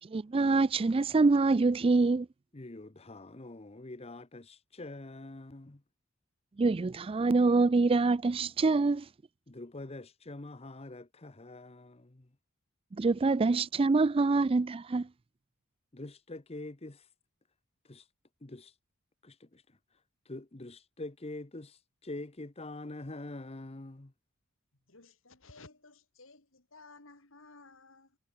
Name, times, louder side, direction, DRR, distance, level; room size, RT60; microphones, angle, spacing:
voice 1, 0.0-2.3 6.6-9.1 12.9-15.1, right 3 dB, 25° right, 0.3 m, -25 dB
voice 2, 2.5-5.8 9.5-12.3 15.9-17.1 17.8-18.1 18.4-18.8 19.2-24.1, left 2 dB, 30° left, 1.0 m, -45 dB
voice 3, 24.9-28.2, left 3 dB, 65° left, 3.3 m, -55 dB
head